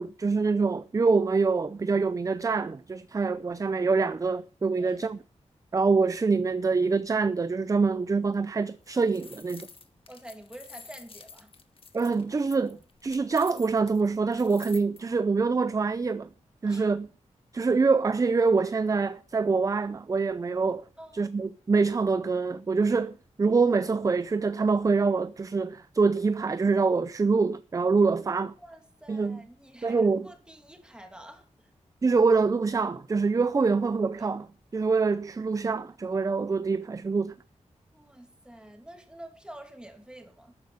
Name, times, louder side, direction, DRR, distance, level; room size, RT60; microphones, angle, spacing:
voice 1, 0.0-5.2 5.7-9.7 11.9-16.3 16.6-17.1 17.5-20.8 21.1-28.5 29.1-29.4 29.8-30.3 32.0-34.5 34.7-37.4, right 4 dB, 30° right, 0.5 m, -25 dB
sound 1, 8.7-15.0, left 4 dB, 50° left, 1.5 m, -49 dB
voice 2, 10.1-11.5 16.7-17.0 21.0-21.4 28.6-31.7 34.2-34.3 37.9-40.6, right 1 dB, 5° right, 2.6 m, -48 dB
13.0 x 9.7 x 5.0 m
wide cardioid pair, 140°, 12 cm